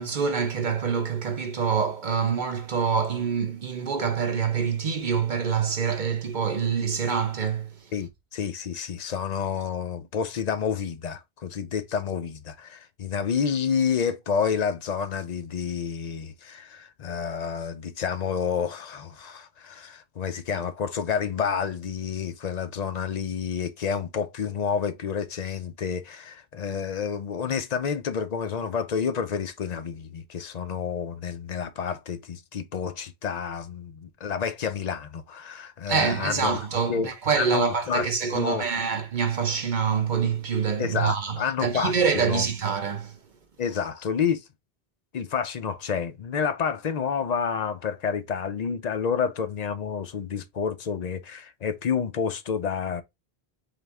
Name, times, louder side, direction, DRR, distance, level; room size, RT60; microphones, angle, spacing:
voice 1, 0.0-7.9 35.9-43.2, right 6 dB, 55° right, 0.8 m, -26 dB
voice 2, 7.9-36.6 36.9-37.1 37.4-38.7 40.8-42.5 43.6-44.4 45.1-53.0, left 6 dB, 50° left, 0.6 m, -29 dB
4.1 x 3.2 x 3.3 m
omnidirectional pair, 1.0 m